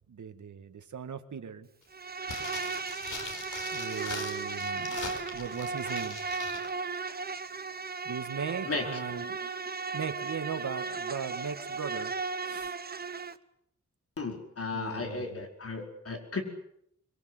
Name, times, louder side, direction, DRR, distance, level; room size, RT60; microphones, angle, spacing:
voice 1, 0.0-1.7 3.7-6.2 8.1-9.4 9.9-12.1 12.5-12.8 14.7-15.5, right 6 dB, 85° right, 8 dB, 2.1 m, -38 dB
Insect, 1.9-13.4, right 4 dB, 35° right, 1.0 m, -36 dB
sound 1, 2.2-6.7 6.9-7.0, left 4 dB, 90° left, 5.1 m, -42 dB
voice 2, 14.2-16.4, left 3 dB, 50° left, 3 dB, 5.0 m, -35 dB
26.0 x 22.5 x 8.1 m, 0.73 s
wide cardioid pair, 150°, 29 cm